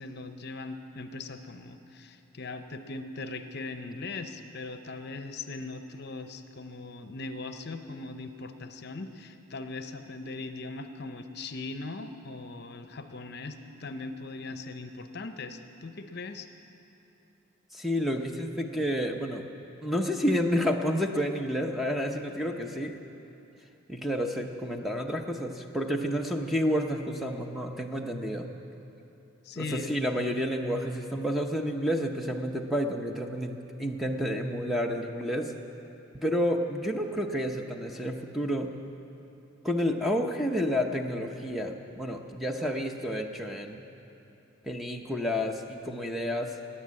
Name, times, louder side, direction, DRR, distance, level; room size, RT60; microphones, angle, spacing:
voice 1, 0.0-16.5 29.4-29.9, left 3 dB, 50° left, 8 dB, 0.7 m, -39 dB
voice 2, 17.7-19.4 19.8-23.0 23.9-28.5 29.6-35.5 36.1-38.7 39.6-43.8 44.6-46.6, equal, ahead, 3 dB, 0.7 m, -30 dB
18.0 x 9.8 x 7.6 m, 2.9 s
head